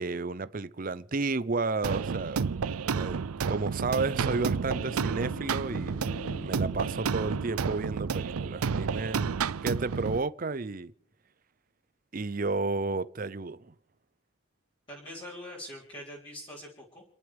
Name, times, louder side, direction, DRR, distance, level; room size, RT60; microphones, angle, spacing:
voice 1, 0.0-2.5 2.9-9.3 9.6-10.9 12.1-13.7, right 3 dB, 40° right, 0.6 m, -32 dB
sound 1, 1.8-10.2, right 6 dB, 85° right, 0.5 m, -31 dB
sound 2, 3.9-9.9 10.2-10.3, left 1 dB, 60° left, 1.7 m, -46 dB
voice 2, 14.9-17.0, left 1 dB, 25° left, 3.7 m, -43 dB
30.0 x 11.0 x 3.5 m
head